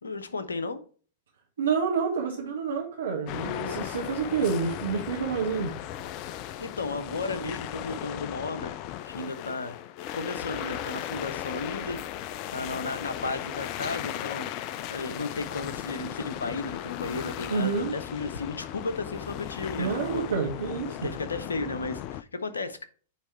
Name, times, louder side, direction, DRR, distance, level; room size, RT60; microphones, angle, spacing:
voice 1, 0.0-0.8 6.6-8.7 9.0-9.8 10.1-12.0 12.5-20.3 21.0-22.8, left 3 dB, 75° left, 0.9 m, -34 dB
voice 2, 1.6-5.7 17.5-17.9 19.8-21.0, right 5 dB, 70° right, 1.4 m, -28 dB
sound 1, 3.3-22.2, left 12 dB, 40° left, 0.5 m, -36 dB
9.3 x 3.4 x 4.4 m
figure-of-eight pair, 100°, 0 cm